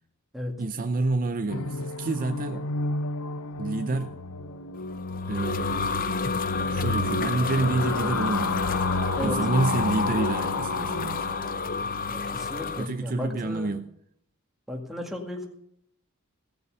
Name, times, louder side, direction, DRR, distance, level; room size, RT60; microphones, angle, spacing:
voice 1, 0.6-2.7 3.6-4.2 5.3-6.2 6.7-8.6 9.2-11.3 12.8-13.9, right 3 dB, 40° right, 0.5 m, -28 dB
sound 1, 1.5-12.3, left 2 dB, 85° left, 0.7 m, -31 dB
sound 2, 4.9-12.9, left 5 dB, 40° left, 0.7 m, -31 dB
voice 2, 12.1-13.7 14.7-15.5, left 1 dB, ahead, 2.0 m, -35 dB
16.5 x 6.9 x 6.6 m
head